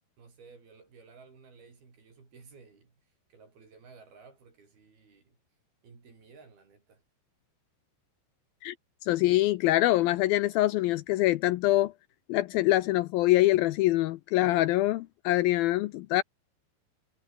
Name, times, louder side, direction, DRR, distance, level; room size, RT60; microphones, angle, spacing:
voice 1, 0.2-5.4 5.8-7.0, right 4 dB, 60° right, 8.2 m, -55 dB
voice 2, 9.0-11.9 12.3-16.2, left 16 dB, 85° left, 2.1 m, -24 dB
omnidirectional pair, 4.9 m